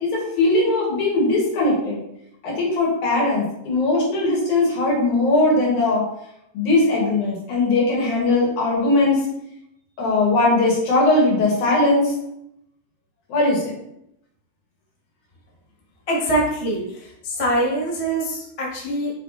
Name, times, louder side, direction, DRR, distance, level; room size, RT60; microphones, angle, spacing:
voice 1, 0.0-2.0 2.4-6.1 6.5-9.2 10.0-12.1 13.3-13.8, left 2 dB, 85° left, -3 dB, 3.3 m, -19 dB
voice 2, 16.1-19.1, right 1 dB, 35° left, -3 dB, 0.5 m, -24 dB
7.5 x 3.3 x 4.1 m, 0.78 s
omnidirectional pair, 3.4 m